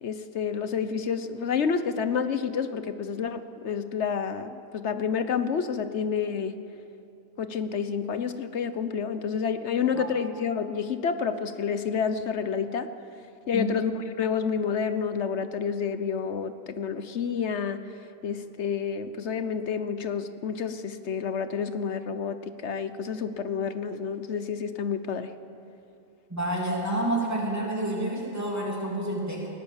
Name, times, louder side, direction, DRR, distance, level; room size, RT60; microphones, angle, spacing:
voice 1, 0.0-6.6 7.4-12.9 13.5-17.8 18.2-25.3, left 6 dB, 50° left, 10 dB, 1.2 m, -29 dB
voice 2, 26.3-29.5, right 1 dB, 10° right, -2 dB, 3.1 m, -29 dB
19.5 x 19.0 x 7.3 m, 2.7 s
omnidirectional pair, 1.6 m